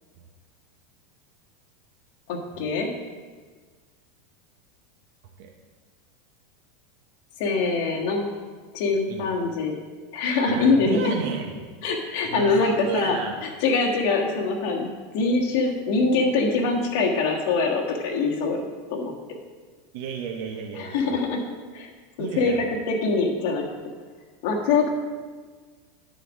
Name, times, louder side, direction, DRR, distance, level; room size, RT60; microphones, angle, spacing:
voice 1, 2.3-2.9 7.4-8.2 8.7-9.8 10.1-11.1 11.8-13.2 13.6-14.9 15.1-18.6 18.9-19.1 20.8-21.4 21.7-21.9 22.2-23.6 24.4-24.9, left 4 dB, 60° left, 1 dB, 1.5 m, -23 dB
voice 2, 10.5-11.6 12.2-13.3 19.9-21.1 22.2-22.7, right 7 dB, 65° right, 2 dB, 0.8 m, -32 dB
10.0 x 4.2 x 6.1 m, 1.5 s
supercardioid pair, 145°, 0 cm